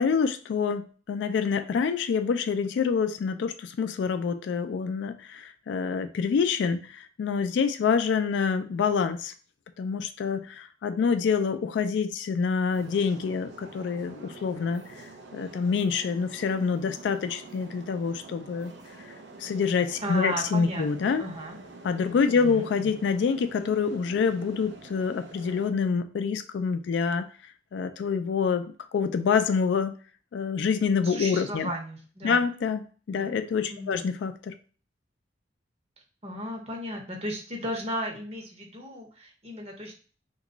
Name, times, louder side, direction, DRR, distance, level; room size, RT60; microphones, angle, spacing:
voice 1, 0.0-9.3 9.8-18.7 19.1-19.2 19.4-21.2 21.8-30.0 30.3-31.7 32.2-34.5, left 5 dB, 70° left, 9 dB, 0.3 m, -27 dB
sound 1, 12.7-25.7, right 3 dB, 70° right, 0.4 m, -47 dB
voice 2, 20.0-21.6 22.3-22.9 31.0-32.5 33.1-33.3 33.6-33.9 36.2-40.1, equal, 35° right, 0 dB, 0.8 m, -35 dB
2.9 x 2.3 x 3.7 m, 0.40 s
head